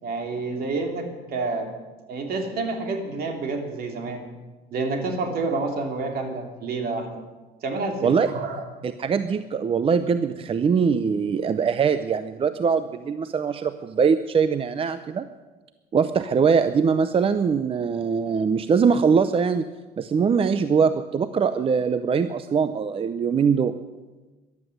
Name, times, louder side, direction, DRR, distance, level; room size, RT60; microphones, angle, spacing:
voice 1, 0.0-1.7 2.1-4.3 4.7-7.1 7.6-8.6, right 3 dB, 65° right, 4 dB, 3.0 m, -28 dB
voice 2, 8.8-15.3 15.9-19.7 20.0-23.8, right 6 dB, 35° right, 12 dB, 0.6 m, -22 dB
13.5 x 12.0 x 7.9 m, 1.2 s
cardioid pair, 110°, 17 cm